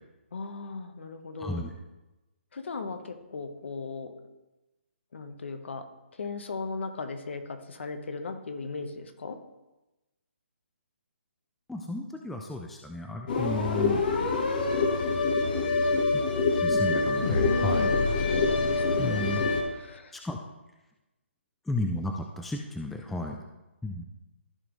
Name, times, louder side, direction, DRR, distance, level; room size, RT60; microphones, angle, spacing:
voice 1, 0.3-1.6 2.5-4.1 5.1-5.8 6.1-9.4 14.1-14.3 17.4-19.3 19.7-20.1, left 4 dB, 65° left, 7 dB, 1.2 m, -37 dB
voice 2, 11.7-14.0 16.6-17.9 19.0-19.4 20.2-20.4 21.7-23.4 23.8-24.1, left 2 dB, ahead, 2 dB, 0.3 m, -33 dB
sound 1, 13.3-19.6, left 3 dB, 45° left, 1.4 m, -25 dB
14.0 x 5.1 x 3.2 m, 1.0 s
hypercardioid pair, 160°, 7 cm